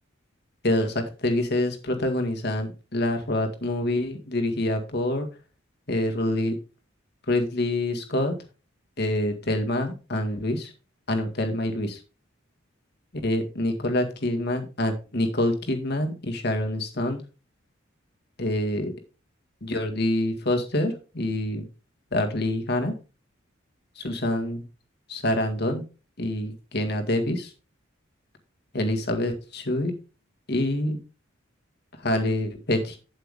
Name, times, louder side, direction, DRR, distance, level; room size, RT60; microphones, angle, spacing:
voice 1, 0.6-5.3 5.9-6.6 7.3-8.3 9.0-10.7 11.1-12.0 13.2-17.2 18.4-18.9 19.6-21.7 22.1-22.9 24.0-24.6 25.1-25.8 26.2-27.5 28.7-30.0 30.5-31.0 32.0-33.0, left 1 dB, 50° left, 5 dB, 1.9 m, -26 dB
8.2 x 8.0 x 3.6 m, 0.32 s
head